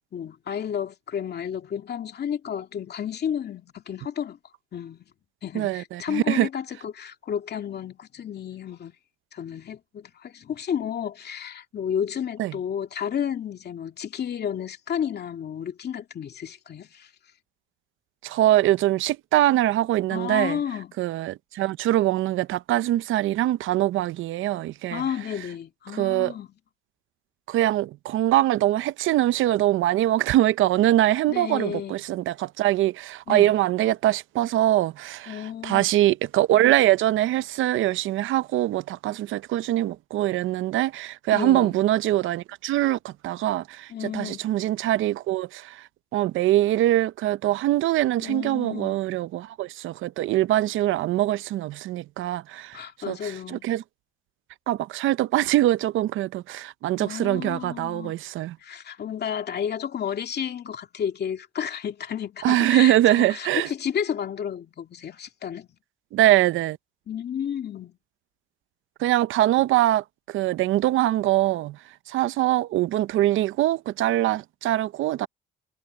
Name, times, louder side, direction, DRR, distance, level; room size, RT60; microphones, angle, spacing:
voice 1, 0.1-4.4 4.7-5.1 5.4-8.9 9.3-17.1 20.1-21.0 24.9-26.5 31.3-32.0 33.3-33.6 35.3-35.9 41.3-41.7 43.9-44.5 48.2-49.0 52.7-53.6 57.0-58.1 58.6-65.7 67.1-68.0, left 8 dB, 55° left, 2.3 m, -32 dB
voice 2, 5.5-6.5 12.4-12.5 18.2-20.6 21.0-25.0 25.9-26.3 27.5-45.8 46.1-52.8 53.1-53.8 54.7-58.6 62.4-63.7 66.1-66.8 69.0-71.8 72.1-75.3, right 14 dB, 80° right, 0.7 m, -23 dB
cardioid pair, 90°, 20 cm